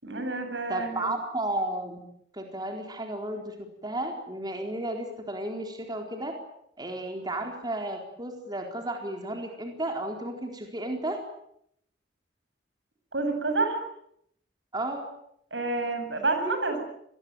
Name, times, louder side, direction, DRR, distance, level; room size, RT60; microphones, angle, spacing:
voice 1, 0.0-1.1 13.1-13.8 15.5-16.8, right 3 dB, 80° right, 6 dB, 7.7 m, -28 dB
voice 2, 0.7-2.0 2.3-3.6 3.8-6.4 6.8-11.2 14.7-15.1, right 1 dB, 25° right, 3 dB, 4.2 m, -33 dB
26.5 x 21.0 x 9.2 m, 0.74 s
head